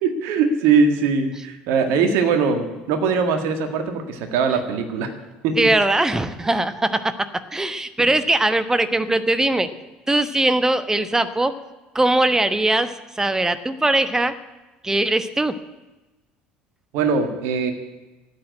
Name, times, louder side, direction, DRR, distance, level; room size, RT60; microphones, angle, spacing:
voice 1, 0.0-5.1 5.4-5.7 16.9-17.7, right 5 dB, 60° right, 6 dB, 1.8 m, -21 dB
voice 2, 5.6-9.7 10.1-11.6 11.9-14.3 14.8-15.6, right 2 dB, 10° right, 12 dB, 1.0 m, -20 dB
13.0 x 8.8 x 10.0 m, 1.1 s
figure-of-eight pair, 60°, 5 cm